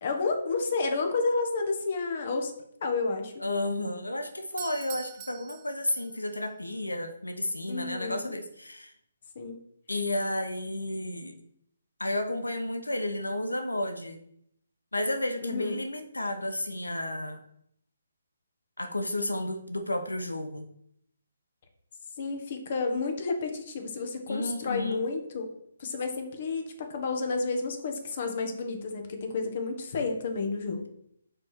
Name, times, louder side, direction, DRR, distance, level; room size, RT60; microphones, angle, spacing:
voice 1, 0.0-2.5 2.8-3.3 7.7-8.4 9.3-9.7 15.4-15.8 22.2-25.5 25.8-30.9, left 4 dB, 40° left, 4 dB, 1.4 m, -31 dB
voice 2, 3.4-8.9 9.9-11.4 12.0-14.2 14.9-17.4 18.8-20.7 24.3-25.0, left 1 dB, 80° left, 7 dB, 1.0 m, -32 dB
Doorbell, 4.4-6.4, right 14 dB, 25° right, 0.4 m, -44 dB
5.9 x 4.9 x 6.3 m, 0.71 s
figure-of-eight pair, 140°, 0 cm